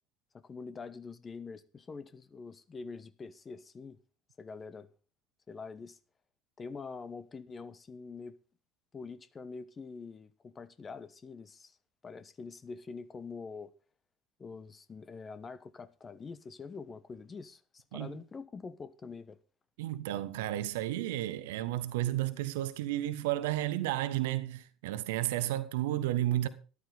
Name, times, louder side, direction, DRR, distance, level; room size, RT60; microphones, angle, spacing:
voice 1, 0.3-4.0 4.4-4.9 5.5-6.0 6.6-8.4 8.9-11.8 12.0-13.7 14.4-19.4, left 4 dB, 30° left, 1.1 m, -45 dB
voice 2, 19.8-26.5, right 14 dB, 70° right, 1.1 m, -32 dB
13.0 x 11.5 x 4.0 m
figure-of-eight pair, 65°, 0 cm